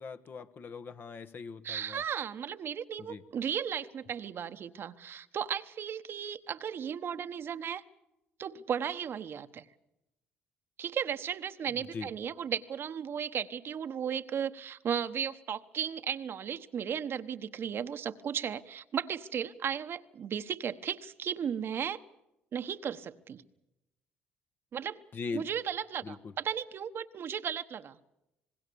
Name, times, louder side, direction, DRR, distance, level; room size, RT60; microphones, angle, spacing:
voice 1, 0.0-2.0 3.1-3.2 11.9-12.1 25.1-25.5 26.0-26.3, left 4 dB, 45° left, 9 dB, 1.3 m, -40 dB
voice 2, 1.6-7.8 8.4-9.6 10.8-22.0 22.5-23.4 24.7-25.0 25.3-28.0, right 8 dB, 55° right, 10 dB, 1.1 m, -35 dB
26.0 x 20.0 x 7.0 m, 0.90 s
supercardioid pair, 70°, 5 cm